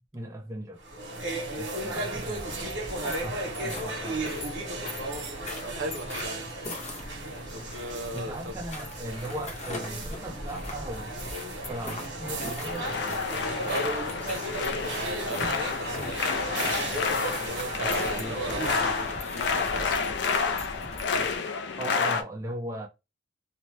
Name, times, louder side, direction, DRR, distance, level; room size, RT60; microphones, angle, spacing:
voice 1, 0.1-0.8 1.6-2.9 3.2-4.4 8.1-11.1 11.7-13.7 17.8-18.4 21.8-22.9, right 1 dB, 15° right, 0.5 m, -38 dB
sound 1, 0.8-19.3, right 1 dB, 70° right, 1.1 m, -35 dB
sound 2, 2.1-21.4, left 1 dB, 35° left, 0.8 m, -41 dB
voice 2, 4.1-4.4 5.6-6.5 7.5-8.5 13.7-14.2 14.5-16.1 17.4-20.6, right 1 dB, 90° right, 0.8 m, -37 dB
sound 3, 12.6-22.2, left 5 dB, 60° left, 0.4 m, -30 dB
2.7 x 2.1 x 3.2 m
head